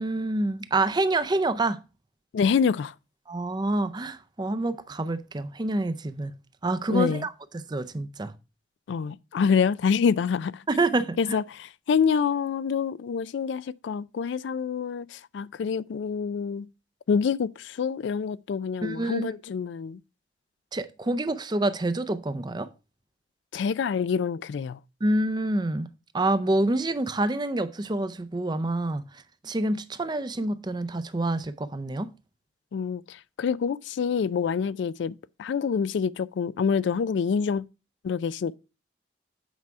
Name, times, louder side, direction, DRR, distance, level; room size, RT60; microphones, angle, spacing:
voice 1, 0.0-1.8 3.3-6.3 6.6-7.3 7.7-8.3 10.7-11.4 18.8-19.3 20.7-22.7 25.0-25.9 26.1-29.0 29.4-32.1, right 2 dB, 25° right, 0.5 m, -27 dB
voice 2, 2.3-2.9 6.9-7.3 8.9-10.6 11.2-16.7 17.1-20.0 23.5-24.8 32.7-37.6 38.0-38.6, left 6 dB, 75° left, 0.3 m, -26 dB
8.3 x 4.8 x 4.5 m
head